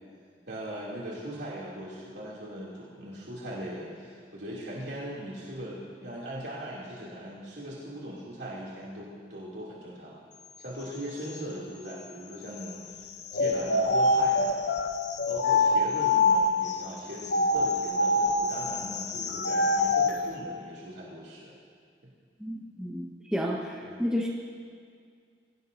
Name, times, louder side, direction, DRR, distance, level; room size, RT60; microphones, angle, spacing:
voice 1, 0.5-10.2 10.6-13.1 13.3-14.6 15.3-21.5 23.8-24.0, equal, 80° right, -6 dB, 2.7 m, -39 dB
sound 1, 13.3-16.7 17.2-20.2, left 2 dB, 80° left, 1.0 m, -25 dB
voice 2, 22.4-24.3, equal, 5° right, -3 dB, 1.1 m, -31 dB
23.0 x 17.0 x 2.6 m, 2.1 s
head